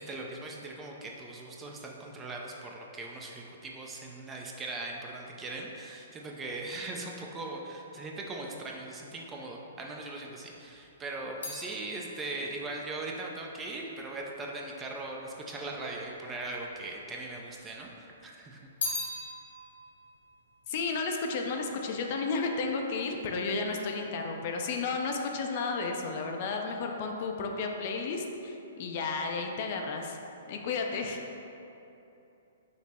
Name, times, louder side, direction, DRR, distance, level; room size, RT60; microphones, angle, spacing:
voice 1, 0.0-18.7, right 2 dB, 15° right, -1 dB, 0.4 m, -40 dB
sound 1, 10.4-14.9 15.7-16.5 16.7-17.9 18.2-21.7 22.0-22.5, left 2 dB, 70° left, 1.0 m, -41 dB
voice 2, 20.7-30.2 30.5-31.2, left 4 dB, 45° left, 2 dB, 0.4 m, -32 dB
5.2 x 2.0 x 4.2 m, 2.9 s
hypercardioid pair, 140°, 0 cm